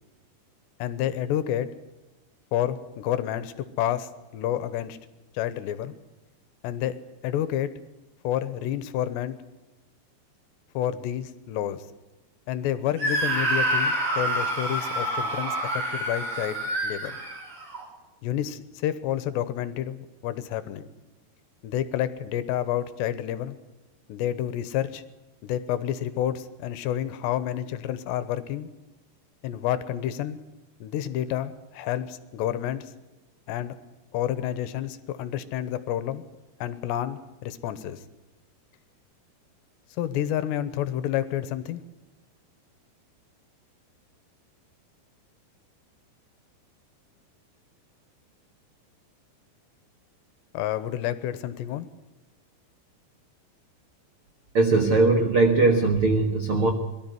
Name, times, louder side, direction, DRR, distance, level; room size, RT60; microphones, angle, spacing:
voice 1, 0.8-1.7 2.5-5.0 5.3-5.9 6.6-7.0 7.2-7.7 8.2-9.4 10.7-11.9 12.5-17.2 18.2-20.9 21.6-23.6 24.1-25.0 25.4-28.7 29.4-30.4 30.8-32.9 33.5-33.7 34.1-36.2 36.6-38.0 40.0-41.8 50.5-51.9, left 11 dB, 80° left, 14 dB, 3.1 m, -29 dB
Screaming, 13.0-17.8, right 1 dB, 30° right, 4.6 m, -27 dB
voice 2, 54.5-56.7, right 3 dB, 70° right, 5 dB, 1.3 m, -20 dB
22.5 x 13.0 x 9.4 m, 1.1 s
omnidirectional pair, 5.2 m